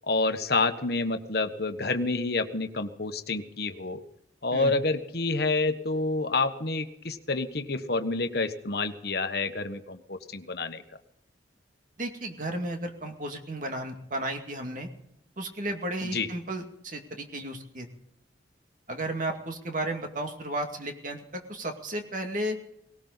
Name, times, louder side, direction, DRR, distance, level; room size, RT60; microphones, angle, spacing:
voice 1, 0.0-4.0 4.4-10.8 16.0-16.3, left 3 dB, 55° left, 8 dB, 1.3 m, -28 dB
voice 2, 12.0-14.9 15.4-17.9 18.9-22.6, right 1 dB, 45° right, 5 dB, 2.2 m, -33 dB
19.0 x 18.0 x 4.0 m, 0.80 s
head